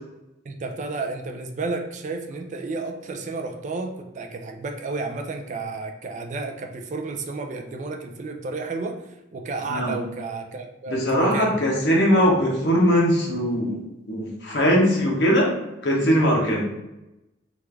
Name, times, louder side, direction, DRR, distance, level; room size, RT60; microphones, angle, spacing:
voice 1, 0.5-11.6 16.4-16.6, right 3 dB, 40° right, 3 dB, 0.3 m, -32 dB
voice 2, 10.9-13.8 14.1-15.5 15.8-16.7, equal, 70° left, -1 dB, 0.9 m, -20 dB
3.2 x 2.4 x 3.2 m, 0.94 s
head